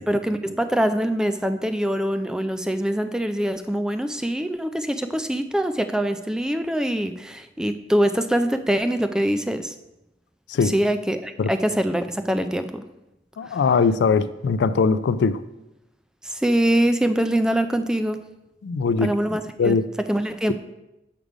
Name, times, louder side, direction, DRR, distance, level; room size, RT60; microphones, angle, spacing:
voice 1, 0.0-9.7 10.6-12.8 13.5-13.6 16.2-18.2 19.0-19.8 20.1-20.5, right 1 dB, 5° right, 9 dB, 0.3 m, -24 dB
voice 2, 13.4-15.4 18.6-19.1 19.6-19.8, left 5 dB, 75° left, 15 dB, 0.3 m, -20 dB
6.6 x 5.0 x 4.9 m, 0.94 s
head